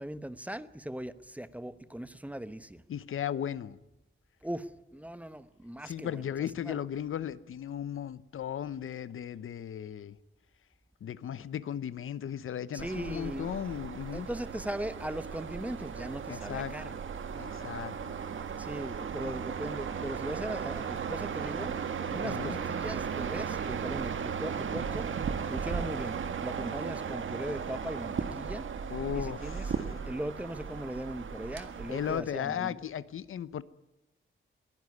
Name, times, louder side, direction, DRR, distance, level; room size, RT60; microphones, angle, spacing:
voice 1, 0.0-2.8 4.4-6.2 6.6-6.8 12.7-13.6 14.1-17.0 18.6-25.1 25.5-28.7 29.1-29.7 30.1-32.8, right 1 dB, 5° right, 0.9 m, -39 dB
voice 2, 2.9-3.8 5.8-10.2 11.0-14.3 16.3-16.9 17.3-18.1 22.2-22.6 28.9-29.9 31.9-33.6, left 9 dB, 80° left, 0.8 m, -36 dB
sound 1, 12.8-32.2, right 6 dB, 70° right, 1.8 m, -36 dB
22.0 x 16.0 x 9.5 m
wide cardioid pair, 110°, 21 cm